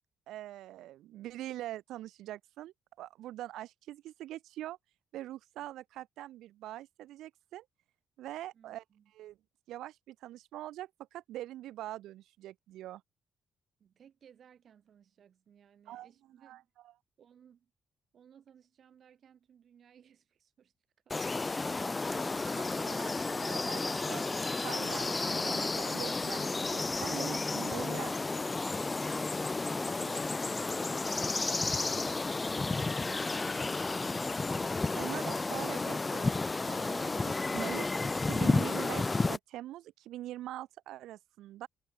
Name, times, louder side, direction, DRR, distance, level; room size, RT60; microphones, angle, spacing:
voice 1, 0.3-4.8 5.1-7.7 8.2-8.8 9.1-9.4 9.7-13.0 15.9-16.1 16.4-16.9 22.5-24.2 24.6-28.1 34.9-36.4 36.6-37.9 38.1-41.7, right 14 dB, 85° right, 2.7 m, -43 dB
voice 2, 8.5-9.1 13.8-16.7 17.2-17.7 18.1-20.7, right 8 dB, 60° right, 7.5 m, -61 dB
sound 1, 21.1-39.4, left 3 dB, 25° left, 0.8 m, -32 dB
cardioid pair, 90°, 0 cm